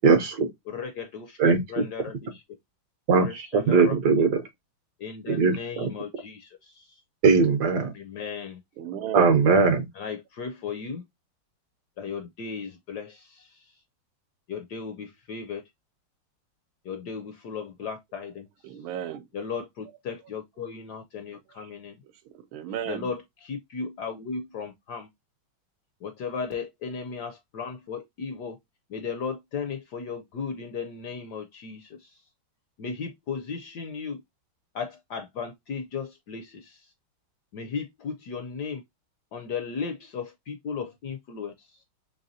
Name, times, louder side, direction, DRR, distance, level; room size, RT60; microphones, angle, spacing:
voice 1, 0.0-0.5 1.4-1.6 3.1-4.4 5.3-5.9 7.2-7.9 9.1-9.9, right 4 dB, 65° right, 1.2 m, -20 dB
voice 2, 0.7-2.1 3.1-4.4 5.0-7.0 7.9-8.6 9.9-11.0 12.0-13.7 14.5-15.6 16.8-18.8 19.3-22.0 22.9-25.1 26.0-28.6 28.9-32.2 32.8-34.2 34.7-36.9 37.5-38.8 39.3-41.8, left 5 dB, 70° left, 0.9 m, -36 dB
voice 3, 8.8-9.4 18.6-19.2 21.5-21.7 22.2-23.1, right 10 dB, 80° right, 1.4 m, -35 dB
4.0 x 3.2 x 2.6 m
omnidirectional pair, 2.3 m